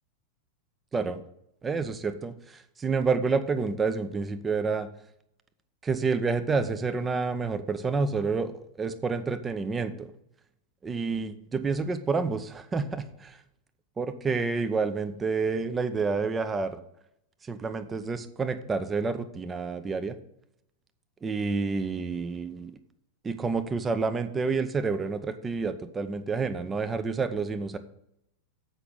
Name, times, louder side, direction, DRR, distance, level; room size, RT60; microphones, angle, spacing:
voice 1, 1.6-4.9 5.8-10.1 10.8-13.4 14.0-16.8 17.4-20.2 21.2-22.7 23.2-27.8, right 4 dB, 15° right, 10 dB, 0.7 m, -29 dB
7.9 x 5.9 x 7.9 m, 0.77 s
figure-of-eight pair, 90°, 0 cm